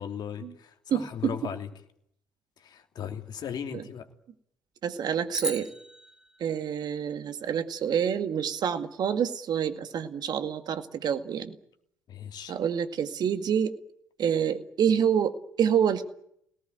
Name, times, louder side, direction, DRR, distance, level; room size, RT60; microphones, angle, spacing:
voice 1, 0.0-1.7 2.6-4.1 12.1-12.5, left 8 dB, 50° left, 5 dB, 2.8 m, -37 dB
voice 2, 0.9-1.3 3.7-3.8 4.8-5.7 6.4-11.6 12.5-13.7 14.2-16.1, right 8 dB, 50° right, 9 dB, 1.9 m, -27 dB
sound 1, 5.3-7.8, right 1 dB, 5° right, 3.0 m, -38 dB
24.5 x 18.5 x 9.2 m, 0.73 s
hypercardioid pair, 50°, 9 cm